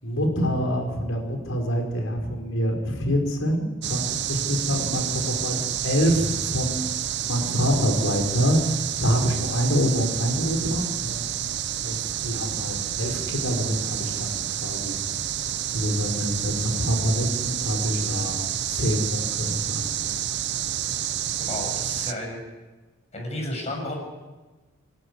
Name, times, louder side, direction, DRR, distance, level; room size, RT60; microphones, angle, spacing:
voice 1, 0.0-6.9 7.2-11.4 11.8-14.9 15.7-18.4 18.7-20.1, equal, 90° left, 2 dB, 5.2 m, -26 dB
sound 1, 3.8-22.1, right 10 dB, 60° right, 0.9 m, -29 dB
voice 2, 21.5-22.4 23.1-23.9, left 1 dB, 35° left, 1 dB, 7.2 m, -32 dB
28.0 x 13.0 x 9.8 m, 1.2 s
head